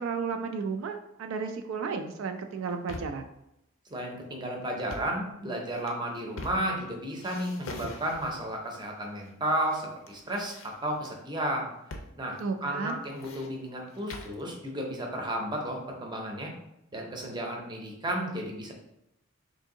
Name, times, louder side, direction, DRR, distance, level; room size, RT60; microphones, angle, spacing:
voice 1, 0.0-3.3 12.4-13.0, right 5 dB, 70° right, 6 dB, 0.3 m, -33 dB
sound 1, 2.5-3.3 4.7-5.2 5.7-6.9 7.2-8.5 9.2-9.8 10.1-11.1 11.9-12.1 12.4-12.5 12.9-14.4, left 2 dB, 75° left, 0.5 m, -43 dB
voice 2, 3.9-11.7 12.2-16.5 16.9-18.7, right 1 dB, 20° right, 0 dB, 0.6 m, -33 dB
3.5 x 2.6 x 3.7 m, 0.84 s
head